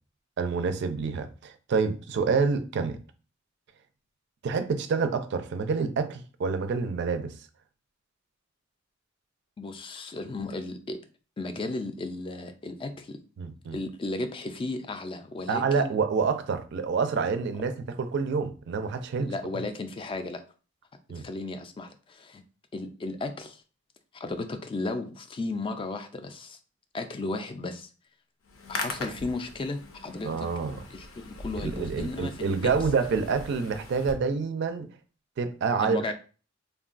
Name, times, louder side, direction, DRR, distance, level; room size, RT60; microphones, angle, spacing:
voice 1, 0.4-3.0 4.4-7.3 13.4-13.8 15.5-19.3 21.1-21.3 30.2-30.8 31.6-34.9 35.4-36.0, right 5 dB, 60° right, 0.4 m, -27 dB
voice 2, 9.6-11.0 11.4-13.2 13.7-16.0 19.2-20.4 21.2-22.4 22.7-23.6 24.1-26.6 26.9-27.9 28.7-30.5 30.9-32.7 35.8-36.1, left 2 dB, 25° left, 0.3 m, -34 dB
Hands, 28.4-34.1, left 3 dB, 75° left, 0.6 m, -40 dB
3.4 x 2.2 x 2.4 m
head